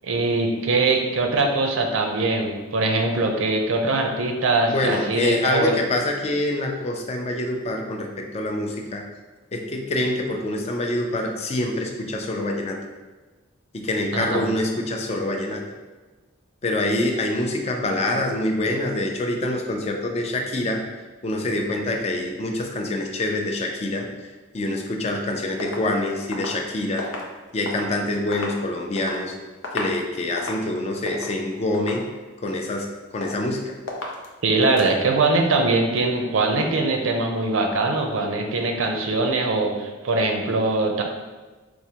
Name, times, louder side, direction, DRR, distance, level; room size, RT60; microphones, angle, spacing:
voice 1, 0.0-5.7 14.1-14.5 34.4-41.0, right 3 dB, 85° right, 2 dB, 0.5 m, -22 dB
voice 2, 4.7-9.0 9.5-12.8 13.7-15.6 16.6-20.8 21.2-24.1 24.5-27.1 27.5-29.3 29.7-32.1 32.4-32.9 33.1-33.8, left 1 dB, 30° left, 2 dB, 0.4 m, -25 dB
sound 1, 25.6-27.9 28.2-29.2 29.5-30.0 30.3-30.7 31.1-31.4 31.7-32.1 32.5-32.9 33.2-33.6 33.9-34.3 34.6-34.9, left 2 dB, 80° left, 0.6 m, -34 dB
4.5 x 2.1 x 2.8 m, 1.2 s
head